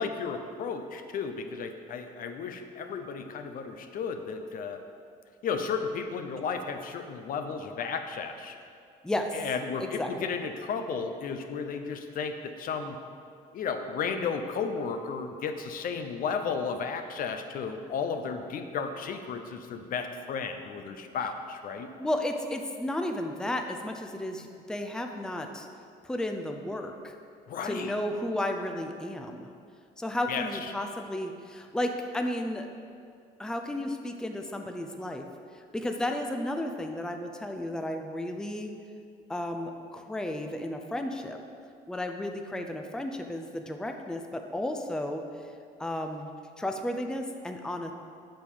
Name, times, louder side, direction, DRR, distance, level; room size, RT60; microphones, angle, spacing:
voice 1, 0.0-4.8 5.4-8.6 9.3-13.0 13.5-21.9 27.5-27.9 30.3-30.7, left 5 dB, 55° left, 7 dB, 0.7 m, -33 dB
voice 2, 9.0-9.4 9.8-10.1 22.0-25.7 26.0-27.1 27.6-29.5 30.0-32.7 33.4-35.3 35.5-38.7 39.3-41.4 41.9-45.2 45.8-46.3 46.6-47.9, left 1 dB, 5° left, 4 dB, 0.6 m, -33 dB
7.7 x 6.8 x 5.4 m, 2.3 s
cardioid pair, 110°, 17 cm